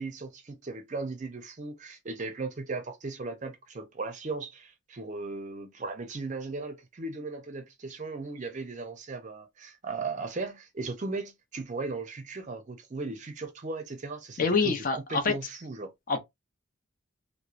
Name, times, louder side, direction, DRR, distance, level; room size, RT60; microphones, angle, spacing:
voice 1, 0.0-15.9, right 3 dB, 40° right, 0.5 m, -37 dB
voice 2, 14.4-15.3 16.1-16.2, left 4 dB, 40° left, 0.6 m, -26 dB
2.9 x 2.0 x 2.4 m
head